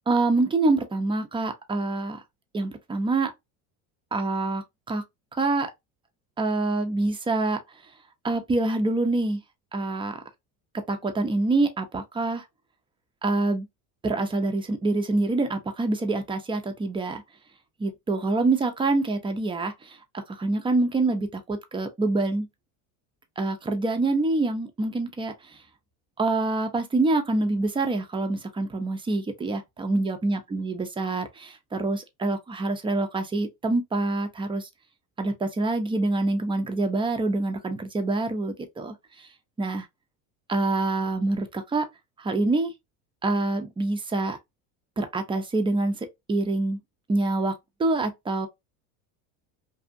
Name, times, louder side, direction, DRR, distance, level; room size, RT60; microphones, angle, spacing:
voice 1, 0.1-2.2 2.5-3.3 4.1-5.0 5.3-5.7 6.4-7.6 8.2-9.4 9.7-10.2 10.9-12.4 13.2-13.7 14.0-17.2 17.8-20.0 20.3-22.5 23.4-25.6 26.2-34.7 35.2-39.3 39.6-39.9 40.5-41.9 42.2-42.7 43.2-44.4 45.0-46.8 47.1-47.5 47.8-48.5, right 2 dB, 10° right, 0.5 m, -26 dB
2.7 x 2.4 x 2.5 m
supercardioid pair, 105°, 43 cm